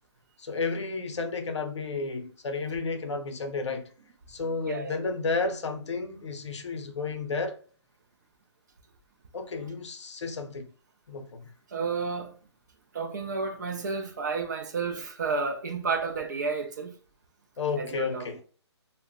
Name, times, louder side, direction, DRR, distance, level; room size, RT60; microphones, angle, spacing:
voice 1, 0.4-3.9 4.3-7.6 9.3-10.7 11.1-11.5 17.6-18.4, left 4 dB, 75° left, 0.6 m, -32 dB
voice 2, 4.7-5.0 11.7-12.3 12.9-16.9 17.8-18.3, right 4 dB, 40° right, 0.4 m, -31 dB
2.1 x 2.0 x 3.5 m
hypercardioid pair, 165°, 15 cm